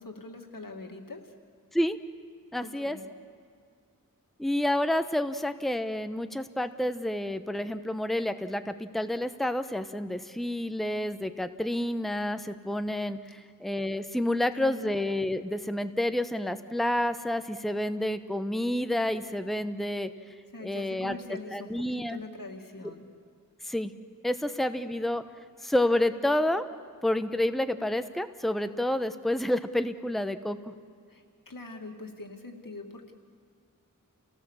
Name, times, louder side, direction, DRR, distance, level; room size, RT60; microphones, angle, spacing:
voice 1, 0.0-1.3 2.6-3.1 14.5-14.9 20.5-23.1 31.1-33.1, left 2 dB, 90° left, 3 dB, 2.3 m, -43 dB
voice 2, 2.5-3.0 4.4-20.1 20.6-21.2 21.5-22.2 23.6-23.9 24.2-25.2 25.6-26.6 27.0-30.6, left 1 dB, ahead, 10 dB, 0.9 m, -29 dB
29.0 x 18.5 x 7.3 m, 2.1 s
wide cardioid pair, 55°, 32 cm